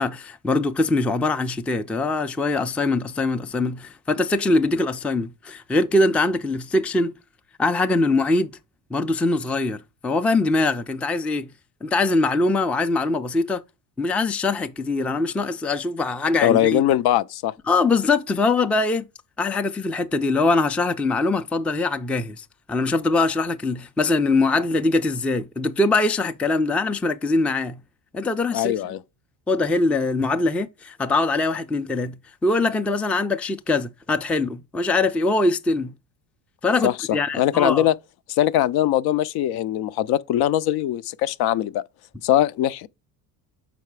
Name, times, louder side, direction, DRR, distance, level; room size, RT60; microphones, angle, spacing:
voice 1, 0.0-7.1 7.6-8.5 8.9-11.5 11.8-13.6 14.0-16.8 17.7-19.1 19.4-27.8 28.1-28.7 29.5-35.9 36.6-37.9, left 3 dB, 5° left, 0.3 m, -22 dB
voice 2, 16.4-17.5 28.5-29.0 36.8-37.9 38.3-41.8 42.2-42.9, left 12 dB, 60° left, 0.5 m, -21 dB
5.8 x 4.2 x 4.7 m
supercardioid pair, 85°, 44 cm